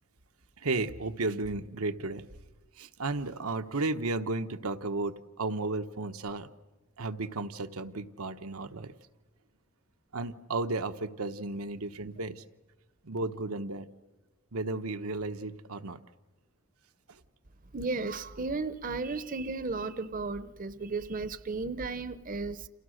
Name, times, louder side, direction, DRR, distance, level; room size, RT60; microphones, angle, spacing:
voice 1, 0.6-2.2 2.8-6.5 7.0-8.9 10.1-12.4 13.0-13.9 14.5-16.0 17.1-17.2, right 3 dB, 85° right, 1.2 m, -34 dB
voice 2, 17.7-22.7, right 3 dB, 40° right, 0.8 m, -34 dB
30.0 x 28.5 x 6.5 m
head